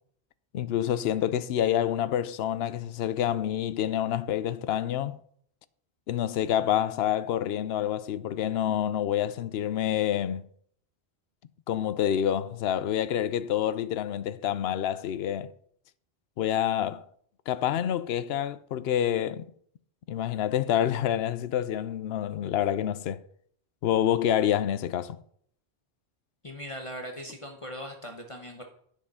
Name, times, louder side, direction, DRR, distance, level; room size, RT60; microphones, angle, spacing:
voice 1, 0.5-5.2 6.1-10.4 11.7-15.5 16.4-17.0 17.5-19.5 20.1-23.2 23.8-25.2, left 10 dB, 75° left, 0.8 m, -27 dB
voice 2, 26.4-28.6, equal, 30° left, 1.1 m, -39 dB
10.0 x 6.7 x 5.5 m
omnidirectional pair, 1.1 m